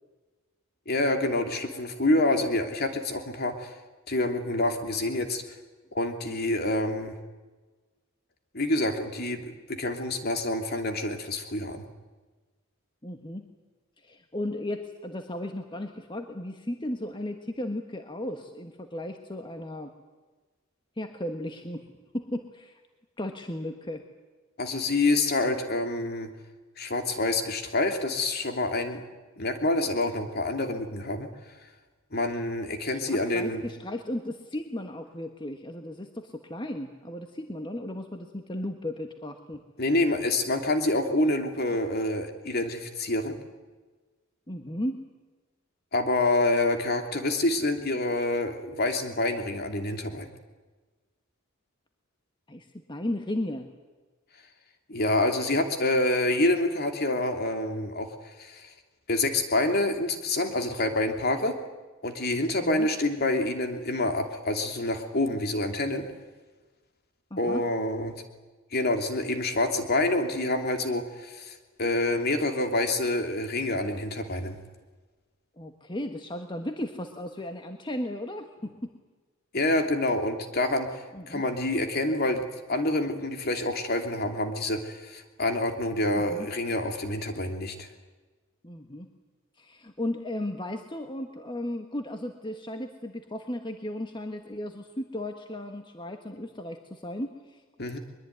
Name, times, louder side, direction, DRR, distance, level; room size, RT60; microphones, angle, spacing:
voice 1, 0.9-3.7 4.1-5.4 5.9-7.1 8.5-11.8 24.6-26.3 26.8-29.0 29.4-31.3 32.1-33.6 39.8-43.4 45.9-50.3 54.9-58.7 59.1-61.6 62.0-66.1 67.4-68.2 68.7-74.6 79.5-87.9 97.8-98.0, left 2 dB, 50° left, 6 dB, 2.9 m, -27 dB
voice 2, 13.0-13.5 14.0-19.9 21.0-21.9 22.1-22.8 23.2-24.0 33.0-39.6 44.5-45.0 52.5-53.7 62.6-62.9 67.3-67.6 75.6-78.9 81.1-81.4 86.1-86.4 88.6-89.1 89.6-97.6, left 1 dB, 20° left, 5 dB, 1.5 m, -35 dB
23.0 x 22.5 x 9.5 m, 1.3 s
head